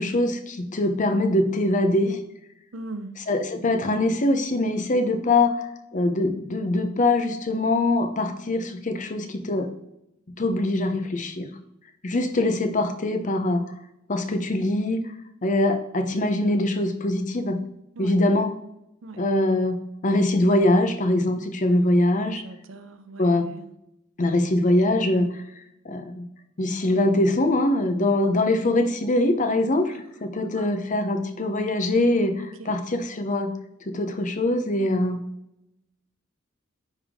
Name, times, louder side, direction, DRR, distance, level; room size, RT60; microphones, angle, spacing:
voice 1, 0.0-2.2 3.2-9.7 10.4-11.5 12.0-13.7 14.1-15.0 15.4-17.6 18.0-18.5 19.2-22.4 23.2-23.5 24.2-26.2 26.6-33.5 33.9-35.2, left 1 dB, 40° left, 9 dB, 0.7 m, -23 dB
voice 2, 2.7-3.2 18.0-18.1 19.0-19.2 22.2-23.7 30.6-31.0 32.4-32.7, right 2 dB, 70° right, 10 dB, 0.6 m, -40 dB
9.7 x 3.5 x 3.6 m, 0.81 s
head